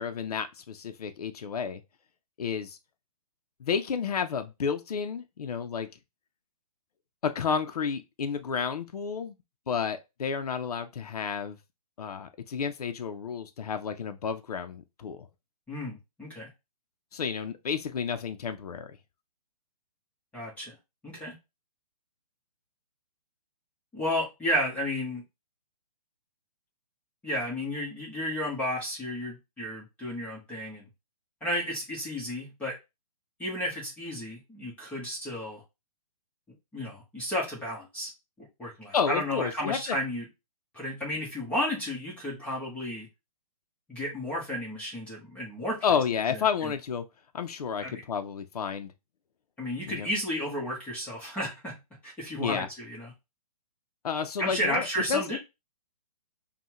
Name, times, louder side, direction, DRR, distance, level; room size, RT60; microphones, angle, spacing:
voice 1, 0.0-1.8 2.4-2.8 3.6-5.9 7.2-9.3 9.7-11.6 12.0-15.3 17.1-19.0 38.9-39.8 45.8-47.0 47.3-48.9 49.9-50.1 52.4-52.7 54.0-54.8 55.1-55.4, left 6 dB, 80° left, 0.7 m, -31 dB
voice 2, 15.7-16.5 20.3-20.8 21.0-21.3 23.9-25.2 27.2-30.8 31.4-32.8 33.4-35.6 36.7-38.1 38.4-40.3 40.7-43.1 43.9-45.9 46.3-46.7 47.8-48.0 49.6-53.1 54.4-55.4, equal, 5° left, 1.2 m, -33 dB
5.4 x 2.3 x 3.0 m
hypercardioid pair, 155°, 19 cm